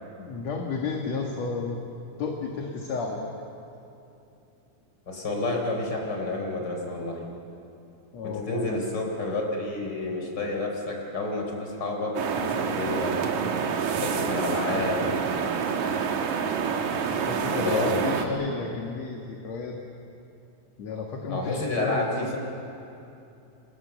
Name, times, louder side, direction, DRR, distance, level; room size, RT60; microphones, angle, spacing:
voice 1, 0.2-1.8 2.2-3.4 8.1-8.8 17.1-19.7 20.8-22.4, left 4 dB, 55° left, 1 dB, 2.6 m, -32 dB
voice 2, 5.1-7.2 8.2-13.2 14.0-15.3 17.5-18.2 21.3-22.4, left 2 dB, 30° left, 1 dB, 4.5 m, -30 dB
sound 1, 12.2-18.3, right 6 dB, 60° right, 2.6 m, -27 dB
28.5 x 25.0 x 7.2 m, 2.8 s
omnidirectional pair, 4.2 m